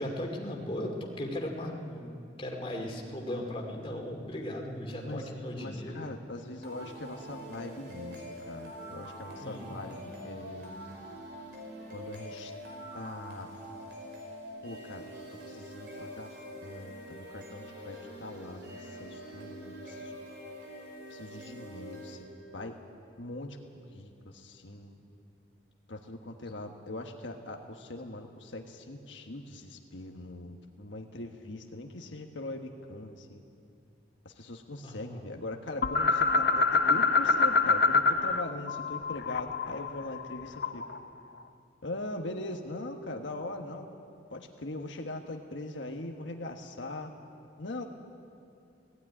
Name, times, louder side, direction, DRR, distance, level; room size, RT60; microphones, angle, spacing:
voice 1, 0.0-2.1 2.4-6.0 9.4-9.7 34.8-35.2, left 1 dB, 30° left, 1 dB, 2.4 m, -37 dB
voice 2, 5.6-11.0 11.9-12.5 12.9-13.5 14.6-15.0 15.5-20.2 21.1-22.2 22.5-22.7 23.2-25.0 25.9-33.4 34.2-40.8 41.8-43.9 44.3-47.1 47.6-47.8, left 2 dB, 85° left, 3 dB, 1.3 m, -41 dB
sound 1, 6.6-22.6, equal, 65° right, 4.8 m, -45 dB
sound 2, 35.8-38.4 38.7-41.0, left 4 dB, 55° left, 0.7 m, -26 dB
17.5 x 15.0 x 9.7 m, 2.6 s
head